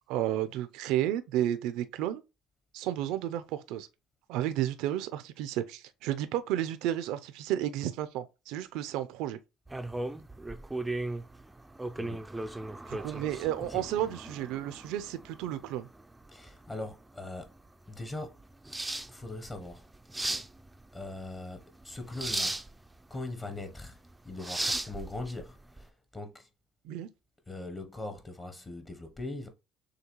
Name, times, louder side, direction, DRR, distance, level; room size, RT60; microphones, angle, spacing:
voice 1, 0.1-2.2 2.7-3.9 4.3-9.4 12.9-15.9 26.8-27.1, right 12 dB, 75° right, 0.4 m, -32 dB
sound 1, 9.7-25.9, right 2 dB, 10° right, 0.3 m, -38 dB
voice 2, 12.0-12.6 13.7-13.9 16.3-17.5 17.9-18.4 19.1-19.8 20.9-22.6 23.1-24.0 24.2-26.5 27.5-29.5, left 2 dB, 20° left, 0.7 m, -41 dB
6.5 x 2.3 x 3.0 m
supercardioid pair, 105°, 0 cm